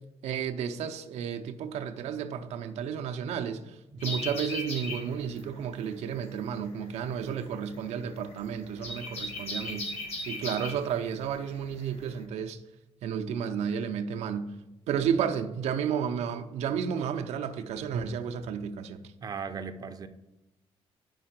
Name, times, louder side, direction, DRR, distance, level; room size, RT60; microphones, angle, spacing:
voice 1, 0.2-3.6 4.0-9.9 10.3-12.6 13.0-14.5 14.9-19.0, right 7 dB, 80° right, 0.6 m, -32 dB
sound 1, 4.0-12.2, left 2 dB, 70° left, 1.5 m, -38 dB
voice 2, 19.2-20.1, right 5 dB, 35° right, 0.5 m, -37 dB
5.5 x 4.6 x 5.8 m
cardioid pair, 120°, 11 cm